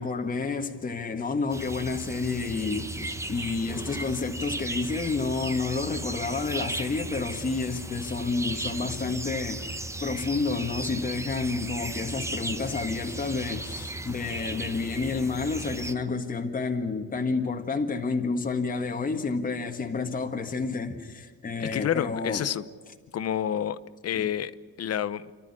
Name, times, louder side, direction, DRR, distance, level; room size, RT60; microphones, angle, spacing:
voice 1, 0.0-9.6 10.0-22.5 24.1-24.3, left 4 dB, 25° left, 1.7 m, -30 dB
sound 1, 1.5-15.9, right 2 dB, 10° right, 0.9 m, -36 dB
voice 2, 21.6-22.6 23.1-23.8 24.0-24.5 24.8-25.2, left 10 dB, 55° left, 0.9 m, -28 dB
30.0 x 13.0 x 9.9 m
cardioid pair, 150°, 31 cm